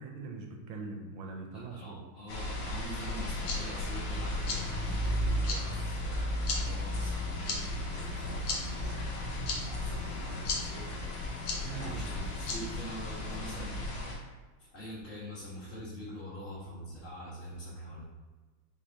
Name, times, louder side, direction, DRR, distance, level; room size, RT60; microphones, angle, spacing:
voice 1, 0.0-2.0 11.6-12.1, right 4 dB, 75° right, 3 dB, 1.2 m, -42 dB
voice 2, 1.5-10.9 11.7-13.8 14.6-18.0, equal, 35° left, -11 dB, 1.4 m, -44 dB
sound 1, 2.3-14.2, left 1 dB, 90° left, 1.9 m, -35 dB
sound 2, 3.1-13.3, left 4 dB, 70° left, 1.5 m, -41 dB
5.4 x 3.4 x 2.7 m, 1.3 s
omnidirectional pair, 2.3 m